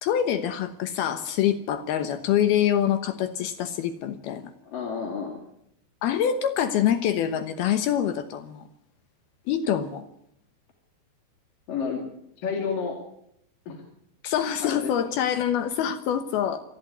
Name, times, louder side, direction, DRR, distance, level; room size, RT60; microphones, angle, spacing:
voice 1, 0.0-4.5 6.0-8.6 9.5-10.1 14.2-16.6, left 9 dB, 70° left, 9 dB, 2.8 m, -25 dB
voice 2, 4.6-5.4 11.7-12.0 12.4-13.0 13.7-13.8 14.6-15.1, left 5 dB, 55° left, 1 dB, 3.9 m, -30 dB
27.0 x 11.5 x 9.5 m, 0.75 s
omnidirectional pair, 5.0 m